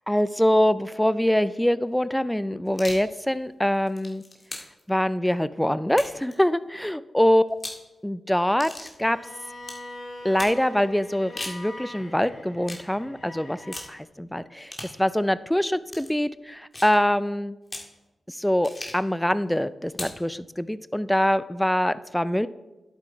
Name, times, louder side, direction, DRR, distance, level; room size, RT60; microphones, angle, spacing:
voice 1, 0.1-4.2 4.9-7.4 8.0-8.7 9.0-9.2 10.2-14.7 15.0-17.6 18.3-22.5, equal, 5° left, 15 dB, 0.4 m, -24 dB
sound 1, 2.7-3.1 3.7-4.8 5.9-6.3 7.5-7.8 8.6-8.9 9.6-9.8 10.4-10.6 11.2-11.6 12.6-12.9 13.7-13.9 14.7-15.0 15.9-16.1 16.7-17.0 17.7-17.9 18.6-19.1 19.9-20.2, left 2 dB, 35° left, 2.2 m, -38 dB
Bowed string instrument, 9.0-13.9, left 1 dB, 55° left, 3.7 m, -42 dB
10.5 x 8.3 x 4.4 m, 1.1 s
cardioid pair, 65°, 0 cm